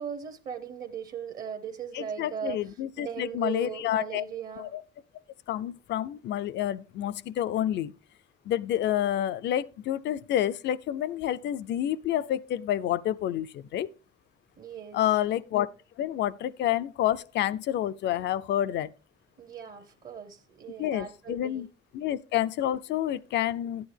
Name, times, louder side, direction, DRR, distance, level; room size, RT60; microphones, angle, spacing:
voice 1, 0.0-4.7 14.6-15.2 19.4-21.6, right 8 dB, 45° right, 0.9 m, -38 dB
voice 2, 1.9-4.2 4.6-4.8 5.5-7.9 8.5-13.9 14.9-15.7 16.0-18.9 20.8-21.7 21.9-23.9, left 12 dB, 65° left, 0.5 m, -29 dB
12.5 x 9.4 x 3.3 m
cardioid pair, 130°, 20 cm